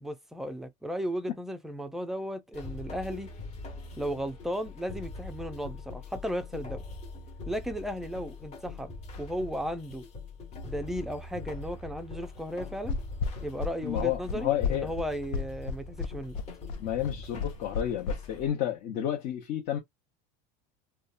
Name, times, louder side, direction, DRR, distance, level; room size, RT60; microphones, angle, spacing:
voice 1, 0.0-3.3 4.0-6.8 7.5-10.0 10.6-13.0 13.4-16.4, equal, ahead, 0.4 m, -35 dB
sound 1, 2.5-18.5, left 3 dB, 30° left, 1.1 m, -43 dB
sound 2, 12.9-18.2, left 4 dB, 85° left, 0.5 m, -32 dB
voice 2, 13.8-14.9 16.8-19.8, left 11 dB, 50° left, 0.8 m, -31 dB
2.7 x 2.2 x 2.4 m
supercardioid pair, 150°, 21 cm